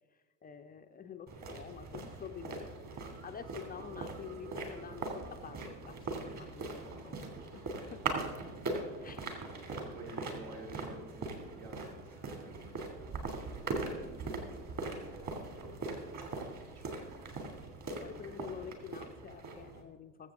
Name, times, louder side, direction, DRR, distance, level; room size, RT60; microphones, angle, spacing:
voice 1, 0.1-2.7 3.2-7.2 7.5-7.6 7.9-8.2 9.0-9.8 12.3-12.5 17.9-20.3, left 8 dB, 20° left, 6 dB, 0.5 m, -48 dB
sound 1, 1.3-19.8, right 3 dB, 35° right, 2.8 m, -41 dB
voice 2, 9.7-12.5 13.5-15.8 16.1-16.9, right 2 dB, 65° right, 1 dB, 2.4 m, -52 dB
21.5 x 7.7 x 3.7 m, 1.4 s
figure-of-eight pair, 75°, 48 cm